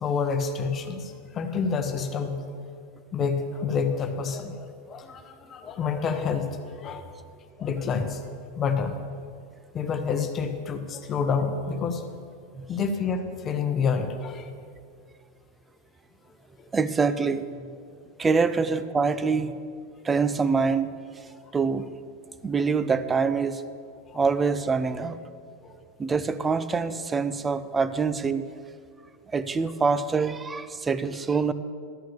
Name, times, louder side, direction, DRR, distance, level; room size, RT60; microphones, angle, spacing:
voice 1, 0.0-2.4 3.1-7.1 7.6-9.0 9.7-12.0 12.7-14.5 16.6-16.7 24.1-24.2 25.6-25.7, left 5 dB, 25° left, 7 dB, 0.9 m, -28 dB
voice 2, 16.7-17.7 18.2-19.5 20.0-20.9 21.5-21.8 22.4-23.6 24.1-25.2 26.0-28.5 29.3-31.5, right 5 dB, 15° right, 13 dB, 0.4 m, -25 dB
12.5 x 6.2 x 7.2 m, 2.2 s
supercardioid pair, 155°, 0 cm